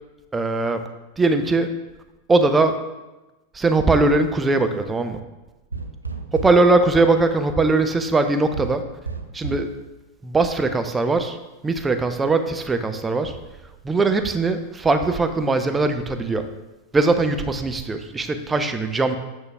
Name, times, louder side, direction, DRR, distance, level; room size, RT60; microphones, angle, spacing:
voice 1, 0.3-0.8 1.2-1.7 2.3-2.7 3.5-5.2 6.3-8.8 9.3-9.7 10.2-11.4 11.6-13.3 13.8-16.4 16.9-19.2, right 3 dB, 15° right, 8 dB, 0.5 m, -20 dB
sound 1, 5.7-6.7 8.5-9.8, right 4 dB, 80° right, 0.5 m, -32 dB
8.5 x 6.2 x 2.3 m, 1.1 s
figure-of-eight pair, 90°, 0 cm